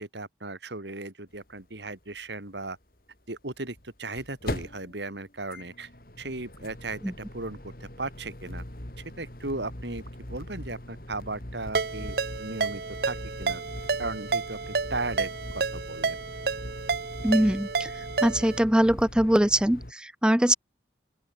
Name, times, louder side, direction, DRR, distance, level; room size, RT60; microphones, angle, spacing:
voice 1, 0.0-2.8 3.3-5.9 6.2-8.6 9.2-10.0 10.3-13.6 14.0-16.2, right 2 dB, 80° right, 3.4 m, -36 dB
sound 1, 1.3-1.4 1.6-1.7 3.6-19.9, left 1 dB, 50° left, 3.9 m, -41 dB
Ringtone, 11.7-18.6, right 4 dB, 60° right, 0.7 m, -30 dB
voice 2, 17.2-17.9 18.2-20.6, right 1 dB, 5° right, 0.4 m, -22 dB
open air
head